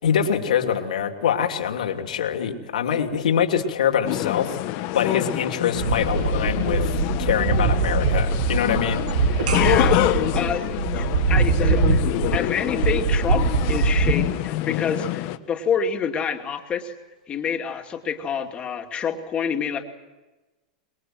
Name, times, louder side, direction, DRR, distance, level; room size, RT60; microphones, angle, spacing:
voice 1, 0.0-4.6 4.9-6.9 7.2-9.1, left 8 dB, 85° left, 5 dB, 3.0 m, -24 dB
sound 1, 4.1-15.4, left 16 dB, 55° left, 1.4 m, -26 dB
sound 2, 5.7-14.1, right 4 dB, 80° right, 2.2 m, -22 dB
voice 2, 9.3-12.0 12.3-16.9 17.3-19.8, left 7 dB, 25° left, 3 dB, 2.6 m, -28 dB
26.0 x 21.5 x 7.8 m, 1.2 s
hypercardioid pair, 120°, 4 cm